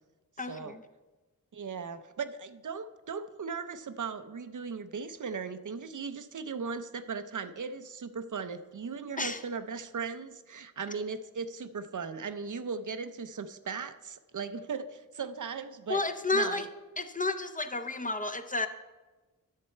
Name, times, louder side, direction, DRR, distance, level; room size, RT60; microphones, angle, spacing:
voice 1, 0.4-0.8 9.2-9.4 15.9-16.7 17.0-18.7, left 3 dB, 25° left, 7 dB, 0.5 m, -31 dB
voice 2, 1.5-16.0 16.3-16.7, right 5 dB, 60° right, 11 dB, 0.5 m, -38 dB
10.5 x 6.7 x 4.4 m, 1.2 s
wide cardioid pair, 80°, 35 cm